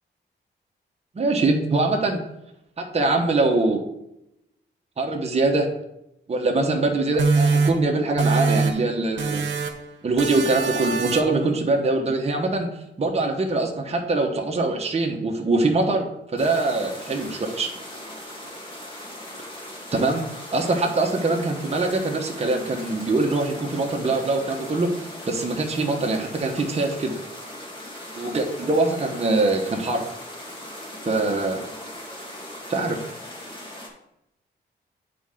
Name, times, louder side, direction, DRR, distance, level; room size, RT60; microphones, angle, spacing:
voice 1, 1.1-2.2 2.8-3.8 5.0-5.7 6.3-9.4 10.0-12.7 13.0-17.7 19.9-20.2 20.5-24.9 25.3-27.2 28.2-30.1 31.1-31.6 32.7-33.0, right 2 dB, 35° right, 1 dB, 1.0 m, -23 dB
sound 1, 7.2-8.9 9.2-9.9 10.2-11.4, right 4 dB, 80° right, 0.8 m, -23 dB
sound 2, 16.4-33.9, left 1 dB, 25° left, 1.6 m, -39 dB
9.1 x 4.2 x 3.8 m, 0.85 s
wide cardioid pair, 115°, 19 cm